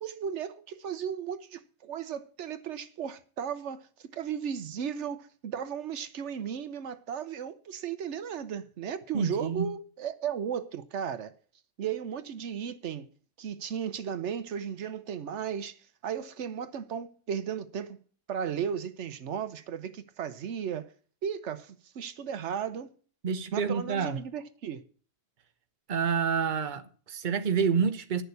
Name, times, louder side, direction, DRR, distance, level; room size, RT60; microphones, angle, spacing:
voice 1, 0.0-3.9 4.1-11.3 11.8-13.1 13.4-15.7 16.0-18.0 18.3-20.9 21.2-22.9 23.5-24.8, right 8 dB, 85° right, 1.1 m, -35 dB
voice 2, 9.1-9.7 23.2-24.2 25.9-28.2, right 6 dB, 45° right, 1.0 m, -28 dB
10.5 x 6.8 x 8.1 m
omnidirectional pair, 1.2 m